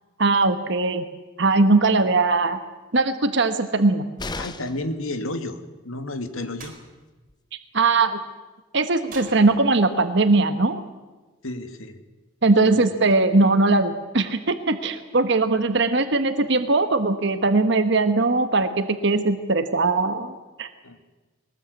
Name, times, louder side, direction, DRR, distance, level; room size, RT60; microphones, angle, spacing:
voice 1, 0.2-1.0 1.4-2.6 2.9-4.0 7.7-8.2 8.7-10.8 12.4-20.3 20.6-20.7, right 3 dB, 60° right, 9 dB, 1.2 m, -20 dB
sound 1, 4.2-4.9 6.9-7.0 7.3-7.4, left 2 dB, 20° left, 0.9 m, -34 dB
voice 2, 4.4-6.7 11.4-12.0 12.5-12.8 20.8-21.0, left 1 dB, 90° left, 8 dB, 2.0 m, -32 dB
sound 2, 6.6-6.8 9.1-10.0, right 4 dB, 40° right, 4.7 m, -43 dB
22.0 x 19.5 x 8.3 m, 1.2 s
head